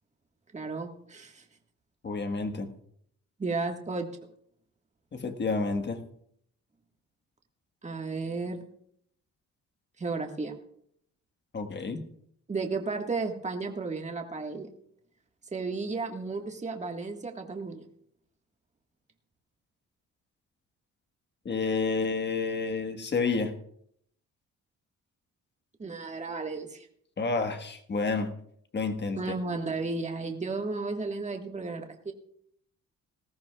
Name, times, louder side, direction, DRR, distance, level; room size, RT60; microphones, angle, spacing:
voice 1, 0.5-1.4 3.4-4.1 7.8-8.7 10.0-10.5 12.5-14.7 15.5-17.9 25.8-26.9 29.2-32.1, right 3 dB, 25° right, 3 dB, 1.6 m, -33 dB
voice 2, 2.0-2.7 5.1-6.0 11.5-12.0 21.4-23.5 27.2-28.3 28.7-29.2, left 4 dB, 35° left, 6 dB, 1.5 m, -29 dB
19.0 x 14.0 x 2.4 m, 0.69 s
cardioid pair, 90°, 30 cm